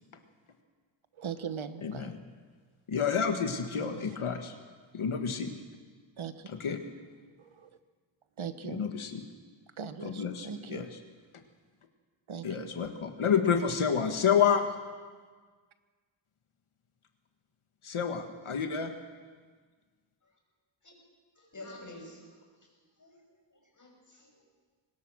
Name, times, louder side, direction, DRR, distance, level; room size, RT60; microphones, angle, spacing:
voice 1, 1.1-2.1 3.8-4.2 6.2-6.5 7.4-7.7 8.4-8.8 9.8-10.9 12.3-12.7, right 7 dB, 75° right, 10 dB, 1.3 m, -40 dB
voice 2, 2.9-4.5 4.9-5.5 6.6-6.8 8.7-9.2 10.0-10.9 12.4-14.6 17.8-18.9, left 7 dB, 90° left, 5 dB, 1.6 m, -29 dB
voice 3, 21.4-22.3 23.0-24.4, left 2 dB, 40° left, 0 dB, 6.7 m, -49 dB
24.0 x 19.5 x 6.2 m, 1.5 s
wide cardioid pair, 85°, 48 cm